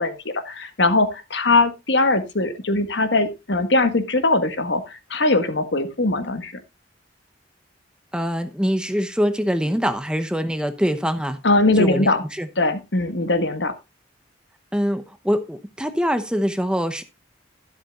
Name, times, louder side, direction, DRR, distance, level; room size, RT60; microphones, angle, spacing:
voice 1, 0.0-6.5 11.4-12.2 12.5-13.7, left 2 dB, 70° left, 1.7 m, -21 dB
voice 2, 8.1-11.4 11.8-12.5 14.7-17.0, equal, 5° right, 0.8 m, -24 dB
12.5 x 11.0 x 2.5 m
head